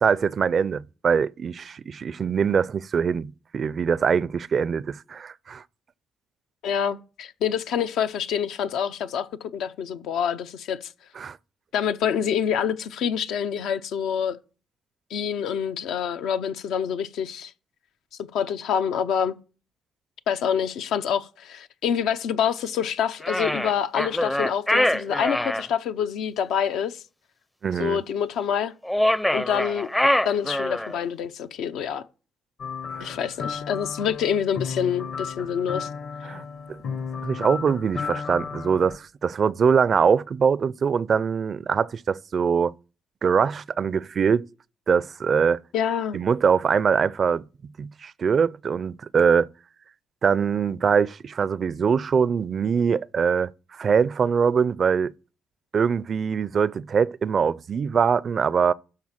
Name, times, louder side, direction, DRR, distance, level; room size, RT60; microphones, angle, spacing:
voice 1, 0.0-5.6 11.2-11.4 27.6-28.0 32.9-33.1 36.3-36.8 37.2-42.7 43.2-44.4 44.9-45.6 46.1-47.4 47.8-49.5 50.2-55.1 55.7-58.7, right 6 dB, 50° right, 0.4 m, -23 dB
voice 2, 6.6-10.9 11.7-14.4 15.1-17.5 18.3-19.4 20.3-27.0 27.8-28.7 29.3-29.9 30.2-32.0 33.0-35.9 45.7-46.2, left 8 dB, 85° left, 0.7 m, -26 dB
sound 1, 23.2-25.6 28.8-31.0, left 1 dB, 10° left, 0.5 m, -24 dB
sound 2, 32.6-39.0, left 6 dB, 60° left, 1.2 m, -34 dB
12.5 x 4.4 x 7.3 m
cardioid pair, 90°, 0 cm